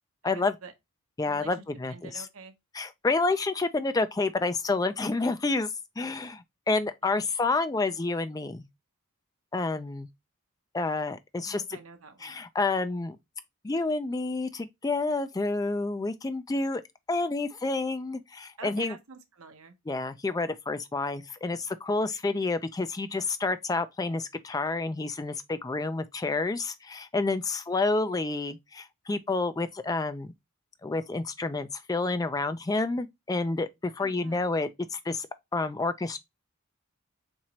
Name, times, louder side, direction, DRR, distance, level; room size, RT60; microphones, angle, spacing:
voice 1, 0.2-0.7 1.2-1.5 1.9-2.5 11.4-12.4 18.6-19.7 34.0-34.5, right 4 dB, 75° right, 0.8 m, -46 dB
voice 2, 1.2-2.3 2.7-8.7 9.5-10.1 10.7-11.8 12.2-13.2 13.6-16.8 17.1-19.0 19.9-30.3 30.8-35.3 35.5-36.2, left 3 dB, 15° left, 0.3 m, -29 dB
4.4 x 2.9 x 2.7 m
head